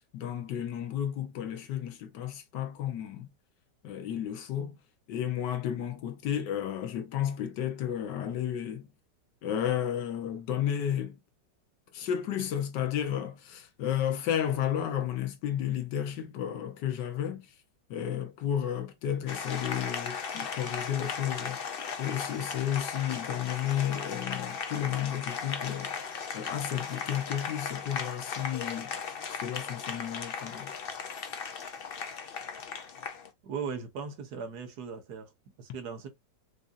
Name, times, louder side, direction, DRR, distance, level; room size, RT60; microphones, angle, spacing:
voice 1, 0.1-3.3 3.8-4.8 5.1-8.9 9.4-11.2 11.9-17.4 17.9-21.6 22.0-25.9 26.3-30.7, left 10 dB, 80° left, 1.4 m, -32 dB
Applause, 19.3-33.3, left 6 dB, 60° left, 0.6 m, -37 dB
voice 2, 33.4-35.3 35.6-36.1, right 6 dB, 65° right, 1.4 m, -38 dB
5.0 x 2.7 x 2.5 m
omnidirectional pair, 1.9 m